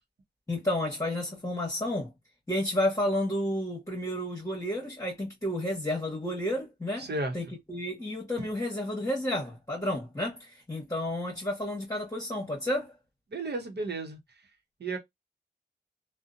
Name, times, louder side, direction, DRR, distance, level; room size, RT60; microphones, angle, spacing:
voice 1, 0.5-2.1 2.5-7.1 7.3-12.9, left 1 dB, 15° left, 1.1 m, -31 dB
voice 2, 7.0-7.3 13.3-14.2 14.8-15.0, right 2 dB, 75° right, 0.8 m, -33 dB
2.7 x 2.1 x 2.5 m
wide cardioid pair, 60°, 18 cm